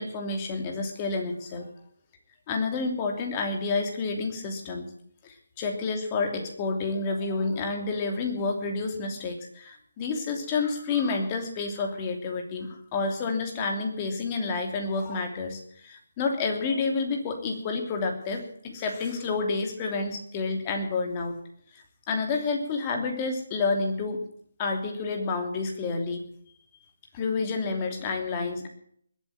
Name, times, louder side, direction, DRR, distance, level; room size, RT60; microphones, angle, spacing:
voice 1, 0.0-1.7 2.5-4.9 5.2-21.3 21.7-24.2 24.6-26.3 27.1-28.7, left 4 dB, 25° left, 3 dB, 3.0 m, -29 dB
21.0 x 8.6 x 7.7 m, 0.65 s
figure-of-eight pair, 155°, 0 cm